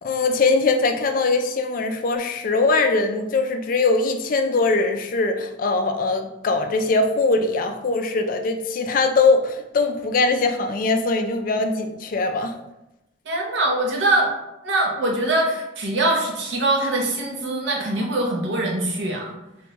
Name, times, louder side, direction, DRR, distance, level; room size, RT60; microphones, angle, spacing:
voice 1, 0.0-12.5, left 3 dB, 45° left, 6 dB, 0.3 m, -21 dB
voice 2, 13.2-14.3 14.6-19.3, right 2 dB, 70° right, 0 dB, 0.8 m, -23 dB
3.4 x 3.0 x 3.0 m, 0.93 s
head